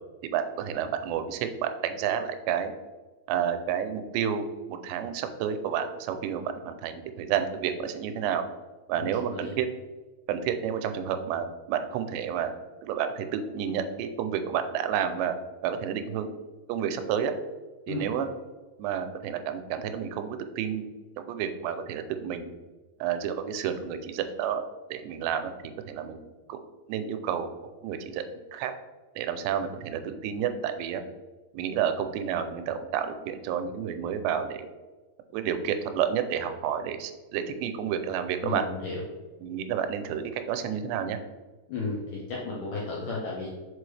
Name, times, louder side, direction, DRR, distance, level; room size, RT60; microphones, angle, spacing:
voice 1, 0.2-2.7 3.3-8.4 8.9-9.7 10.3-12.5 12.8-15.4 15.6-16.3 16.7-17.3 17.9-18.3 18.8-20.9 21.2-22.5 23.0-24.6 24.9-26.2 26.5-26.6 26.9-27.5 27.8-28.7 29.2-31.0 31.5-34.7 35.3-38.6 39.4-41.2, right 8 dB, 90° right, 8 dB, 2.8 m, -30 dB
voice 2, 8.9-9.5 17.9-18.1 38.4-39.0 41.7-43.5, left 3 dB, 85° left, -4 dB, 1.8 m, -34 dB
6.0 x 4.8 x 3.2 m, 1.3 s
omnidirectional pair, 4.8 m